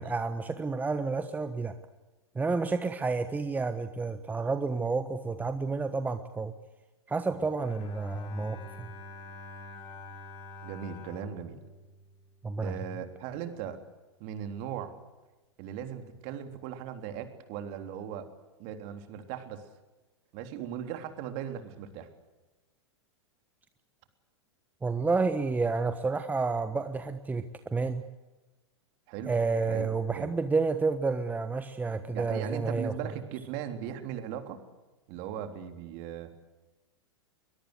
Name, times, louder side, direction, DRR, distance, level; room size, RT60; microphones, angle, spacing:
voice 1, 0.0-1.7 2.3-6.5 7.1-8.9 12.4-12.7 24.8-27.4 27.7-28.0 29.3-32.9, right 4 dB, 10° right, 10 dB, 1.3 m, -30 dB
Bowed string instrument, 7.6-12.9, left 2 dB, 35° left, 4.1 m, -47 dB
voice 2, 10.6-11.6 12.6-13.8 14.2-15.0 15.6-18.3 18.6-19.7 20.3-22.1 29.1-29.3 29.7-29.9 30.1-30.3 32.1-34.6 35.1-36.3, right 9 dB, 45° right, 7 dB, 3.5 m, -38 dB
23.0 x 22.0 x 8.2 m, 1.1 s
figure-of-eight pair, 100°, 14 cm